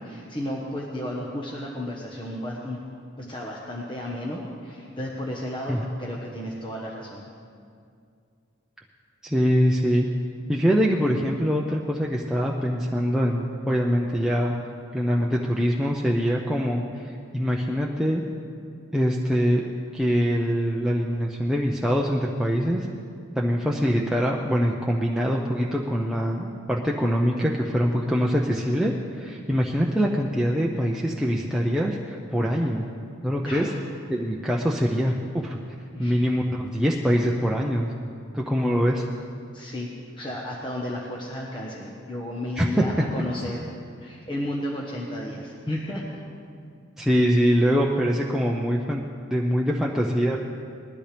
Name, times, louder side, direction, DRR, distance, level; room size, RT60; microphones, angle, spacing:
voice 1, 0.0-2.8 3.3-7.2 33.5-33.8 35.9-36.1 39.5-43.6 44.0-46.2, left 1 dB, 25° left, -4 dB, 1.1 m, -33 dB
voice 2, 9.2-10.1 10.5-14.5 14.9-18.2 18.9-19.7 19.9-22.9 23.4-32.9 33.2-33.7 34.1-35.6 36.0-37.9 38.3-39.0 42.6-42.8 47.0-49.0 49.3-50.4, equal, 5° right, -2 dB, 0.6 m, -23 dB
20.5 x 13.0 x 3.4 m, 2.4 s
head